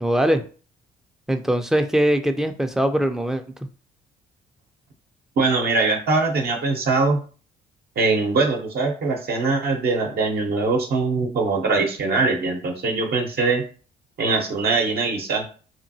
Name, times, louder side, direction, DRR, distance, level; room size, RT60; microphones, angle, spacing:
voice 1, 0.0-0.4 1.3-3.4, right 1 dB, ahead, 6 dB, 0.4 m, -21 dB
voice 2, 5.4-7.2 8.0-13.6 14.2-15.4, right 3 dB, 55° right, 1 dB, 0.7 m, -22 dB
2.9 x 2.5 x 2.7 m, 0.39 s
supercardioid pair, 65°, 20 cm